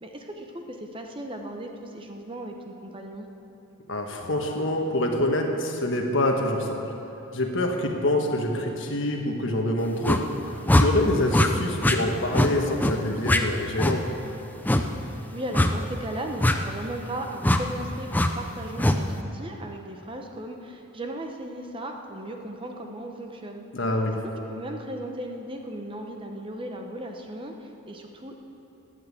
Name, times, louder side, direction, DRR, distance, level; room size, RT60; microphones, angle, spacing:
voice 1, 0.0-3.3 15.3-23.6 24.2-28.3, right 1 dB, 25° right, 3 dB, 0.9 m, -36 dB
voice 2, 3.9-6.8 7.3-10.2 10.7-14.1 23.7-24.2, left 1 dB, 60° left, 2 dB, 1.5 m, -26 dB
sound 1, 10.0-10.2 10.7-10.9 11.3-11.5 11.8-12.0 12.3-12.5 12.8-12.9 13.2-13.4 13.8-14.0 14.6-14.8 15.5-15.7 16.4-16.6 17.4-17.6 18.1-18.3 18.8-19.0, left 1 dB, 10° left, 0.5 m, -20 dB
12.0 x 9.4 x 8.6 m, 2.9 s
head